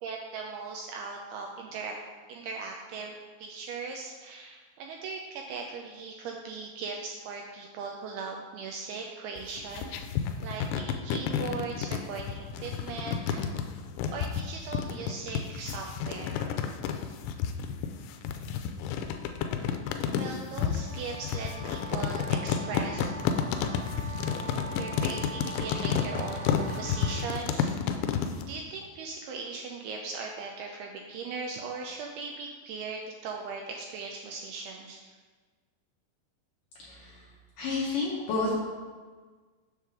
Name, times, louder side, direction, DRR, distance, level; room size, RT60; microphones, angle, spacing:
voice 1, 0.0-1.9 2.3-9.9 10.4-13.5 14.1-16.5 20.1-23.2 24.8-27.7 28.5-35.1, right 4 dB, 85° right, 1 dB, 2.3 m, -39 dB
sound 1, 9.4-28.5, left 7 dB, 90° left, 2.8 m, -31 dB
sound 2, 20.8-27.2, right 3 dB, 60° right, 2.7 m, -42 dB
voice 2, 36.8-37.3 37.6-38.5, left 3 dB, 70° left, -5 dB, 2.1 m, -30 dB
7.2 x 3.6 x 6.2 m, 1.4 s
omnidirectional pair, 5.0 m